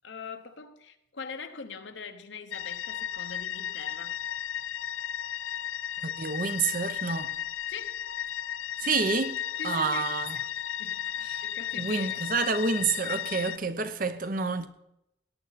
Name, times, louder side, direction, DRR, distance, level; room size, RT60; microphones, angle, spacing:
voice 1, 0.0-4.2 7.7-8.0 9.6-10.1 10.8-12.2, left 5 dB, 70° left, 1.0 m, -42 dB
sound 1, 2.5-13.6, left 10 dB, 90° left, 0.5 m, -34 dB
voice 2, 6.0-7.3 8.8-9.4 9.6-10.4 11.3-11.4 11.7-14.7, right 4 dB, 45° right, 0.8 m, -28 dB
18.0 x 9.3 x 4.1 m
head